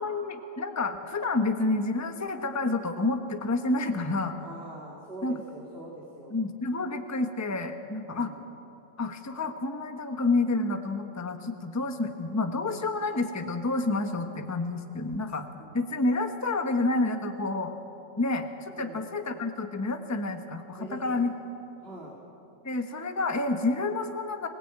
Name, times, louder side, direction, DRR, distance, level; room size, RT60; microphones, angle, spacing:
voice 1, 0.0-4.4 5.2-5.4 6.3-8.3 9.0-15.5 15.7-17.7 18.2-21.3 22.6-24.5, left 2 dB, 10° left, 6 dB, 1.0 m, -29 dB
voice 2, 4.4-6.3 8.1-8.4 15.6-15.8 18.8-19.0 20.8-21.3 21.8-22.2, right 1 dB, 30° right, -2 dB, 2.6 m, -43 dB
25.5 x 18.0 x 8.8 m, 2.9 s
omnidirectional pair, 2.0 m